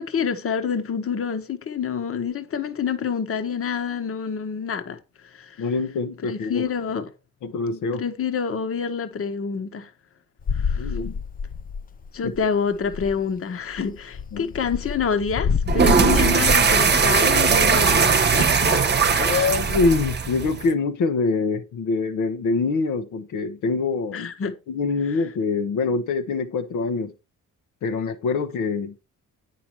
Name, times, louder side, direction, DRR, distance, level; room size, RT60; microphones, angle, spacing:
voice 1, 0.0-5.6 6.2-7.1 8.0-9.9 10.5-10.9 12.1-18.8 19.1-19.5 24.1-24.5, left 6 dB, 45° left, 1.3 m, -27 dB
voice 2, 5.6-6.7 7.4-8.1 10.8-11.1 12.2-12.3 14.3-14.5 19.2-24.3 24.7-27.1 27.8-29.0, left 4 dB, 75° left, 1.1 m, -25 dB
sound 1, 10.4-12.1 12.4-12.5 12.7-13.2 13.7-16.8, left 6 dB, 30° left, 0.4 m, -28 dB
sound 2, 15.7-20.7, right 5 dB, 35° right, 1.0 m, -19 dB
8.7 x 5.9 x 4.6 m
cardioid pair, 90°, 30 cm